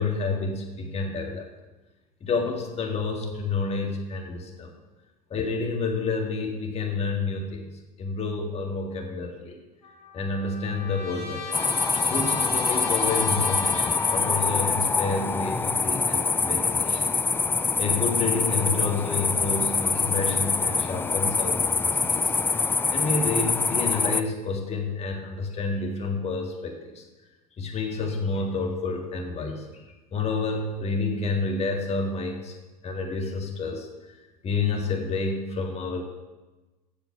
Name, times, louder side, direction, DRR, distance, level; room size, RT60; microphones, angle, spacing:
voice 1, 0.0-1.4 2.2-4.7 5.3-7.7 8.0-9.6 10.1-11.6 12.1-17.1 17.8-22.2 22.9-27.0 27.6-29.6 30.1-32.5 32.8-33.9 34.4-36.0, left 4 dB, 30° left, 2 dB, 1.9 m, -29 dB
Trumpet, 9.8-14.7, left 4 dB, 75° left, 1.6 m, -38 dB
sound 1, 11.5-24.2, left 4 dB, 10° left, 0.3 m, -25 dB
8.2 x 6.9 x 6.1 m, 1.1 s
figure-of-eight pair, 70°, 20 cm